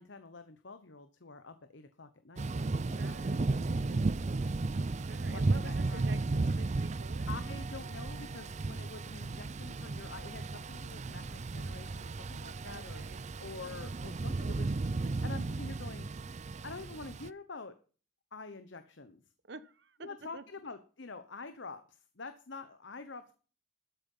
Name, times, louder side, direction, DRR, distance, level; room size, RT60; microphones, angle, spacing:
voice 1, 0.0-4.1 5.3-6.2 7.3-16.1 16.6-17.8 18.3-19.2 20.0-23.3, left 4 dB, 65° left, 10 dB, 1.0 m, -47 dB
Thunder / Rain, 2.4-17.3, right 3 dB, 35° right, 0.5 m, -34 dB
voice 2, 2.9-3.4 4.9-7.3 12.6-13.2 19.5-20.4, right 3 dB, 60° right, 14 dB, 1.0 m, -49 dB
13.0 x 8.5 x 5.6 m, 0.38 s
head